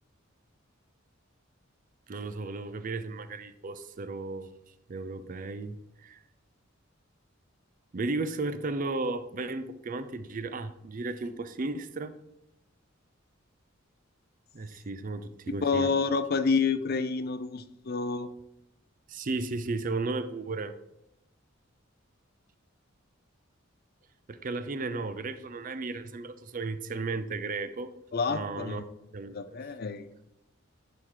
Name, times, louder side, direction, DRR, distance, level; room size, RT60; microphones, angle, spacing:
voice 1, 2.1-4.5 4.9-6.2 7.9-12.1 14.5-15.9 19.1-20.7 24.3-27.9 28.3-28.8 29.1-29.6, right 3 dB, 40° right, 12 dB, 0.5 m, -34 dB
voice 2, 15.5-18.3 28.1-28.9 29.3-30.1, left 4 dB, 50° left, 12 dB, 0.5 m, -28 dB
11.0 x 4.6 x 3.8 m, 0.84 s
head